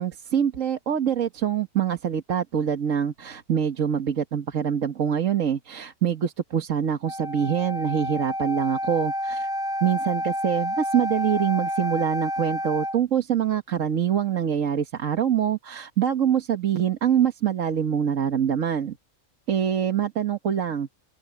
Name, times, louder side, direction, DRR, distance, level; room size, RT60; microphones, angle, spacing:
voice 1, 0.0-9.5 9.8-19.0 19.5-20.9, right 9 dB, 70° right, 1.6 m, -25 dB
Wind instrument woodwind instrument, 7.0-13.0, equal, 15° left, 5.8 m, -29 dB
open air
omnidirectional pair, 1.4 m